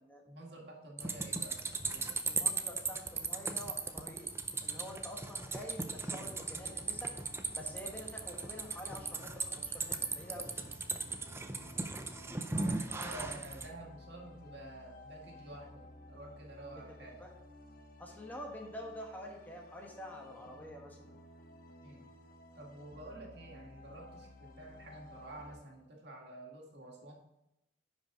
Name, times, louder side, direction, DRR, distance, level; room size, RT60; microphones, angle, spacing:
voice 1, 0.2-2.1 11.5-11.8 12.5-17.2 21.8-22.1 22.5-27.1, right 1 dB, 65° right, -1 dB, 2.1 m, -50 dB
sound 1, 1.0-13.7, right 3 dB, 15° right, 0.5 m, -37 dB
voice 2, 2.2-4.3 4.6-7.1 7.5-10.5 16.7-17.3 18.0-21.1, left 1 dB, 10° left, 0 dB, 1.3 m, -47 dB
sound 2, 6.4-25.6, left 1 dB, 50° left, 1.0 m, -55 dB
10.0 x 5.4 x 3.8 m, 0.89 s
head